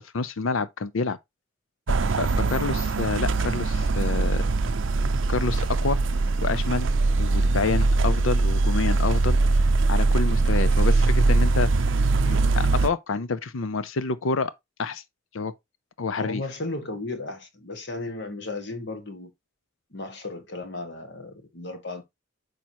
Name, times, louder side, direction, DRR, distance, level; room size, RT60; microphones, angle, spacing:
voice 1, 0.1-1.2 2.2-4.4 5.3-6.0 6.4-6.9 7.2-9.4 9.9-11.7 12.2-14.5 14.8-15.0 15.3-15.5 16.0-16.4, left 4 dB, 75° left, 0.6 m, -28 dB
sound 1, 1.9-12.9, right 3 dB, 65° right, 0.5 m, -22 dB
voice 2, 16.2-19.3 19.9-22.0, left 2 dB, 55° left, 1.8 m, -35 dB
8.6 x 5.0 x 3.0 m
head